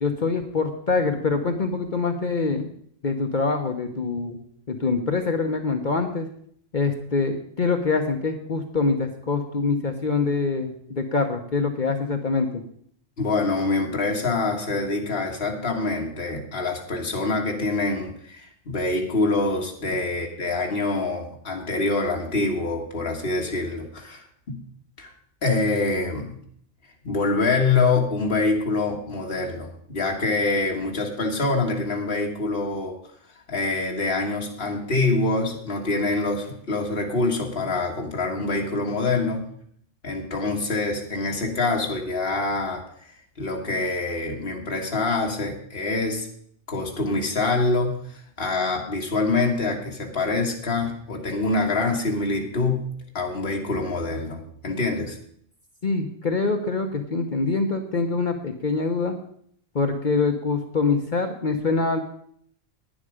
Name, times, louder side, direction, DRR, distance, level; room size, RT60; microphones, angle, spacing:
voice 1, 0.0-2.7 3.0-6.3 6.7-12.6 55.8-59.1 59.7-62.0, left 4 dB, 45° left, 5 dB, 1.1 m, -25 dB
voice 2, 13.2-24.6 25.0-25.1 25.4-26.4 27.0-33.0 33.5-39.5 40.0-42.8 43.4-46.3 46.7-52.9 53.1-55.2, left 3 dB, 65° left, 0 dB, 2.0 m, -25 dB
11.5 x 10.0 x 5.0 m, 0.63 s
omnidirectional pair, 1.1 m